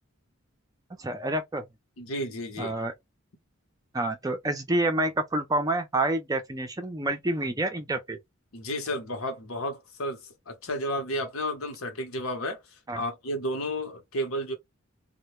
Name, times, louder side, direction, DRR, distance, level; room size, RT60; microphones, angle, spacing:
voice 1, 1.0-1.7 2.6-2.9 3.9-8.2 12.9-13.0, right 2 dB, 15° right, 0.5 m, -28 dB
voice 2, 2.0-2.8 8.5-12.6 13.0-14.5, equal, 80° left, 0.9 m, -32 dB
2.2 x 2.1 x 2.9 m
head